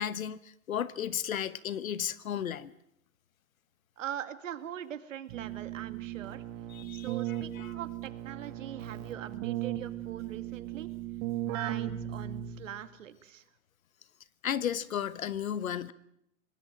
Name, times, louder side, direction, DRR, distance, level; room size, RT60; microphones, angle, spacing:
voice 1, 0.0-2.7 6.7-7.7 14.4-15.9, left 9 dB, 75° left, 16 dB, 1.3 m, -34 dB
voice 2, 4.0-6.4 6.9-10.9 11.5-13.4, right 10 dB, 65° right, 11 dB, 2.1 m, -42 dB
Keyboard (musical), 5.3-12.9, right 12 dB, 35° right, 2.0 m, -37 dB
24.5 x 19.5 x 7.6 m, 0.75 s
hypercardioid pair, 135°, 41 cm